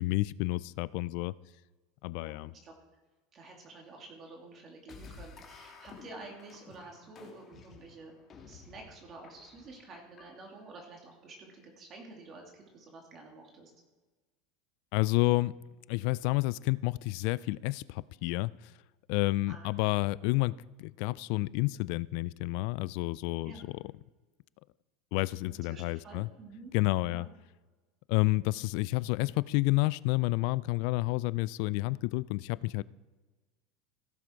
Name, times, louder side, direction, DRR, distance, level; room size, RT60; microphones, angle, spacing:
voice 1, 0.0-1.3 2.0-2.5 14.9-15.5 15.9-18.5 19.1-20.5 20.8-23.7 25.1-26.3 26.7-27.3 28.1-32.8, left 21 dB, 65° left, 21 dB, 0.3 m, -30 dB
voice 2, 2.1-2.7 3.3-8.1 8.5-13.7 19.5-19.9 20.2-20.3 23.4-23.7 25.5-26.7 27.1-27.3, right 3 dB, 40° right, 1 dB, 2.7 m, -50 dB
sound 1, 4.9-10.7, left 4 dB, 35° left, 2.2 m, -53 dB
16.0 x 7.2 x 4.6 m, 1.3 s
hypercardioid pair, 90°, 0 cm